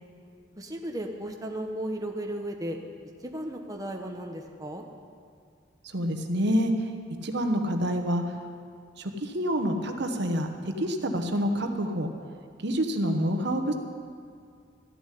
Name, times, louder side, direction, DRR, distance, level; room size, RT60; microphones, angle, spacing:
voice 1, 0.6-2.8 3.2-4.8, right 1 dB, 20° right, 2 dB, 1.0 m, -35 dB
voice 2, 5.9-6.7 7.2-8.2 9.0-10.5 10.8-12.1 12.6-13.7, equal, 65° right, 5 dB, 1.1 m, -27 dB
14.0 x 7.1 x 9.9 m, 2.2 s
head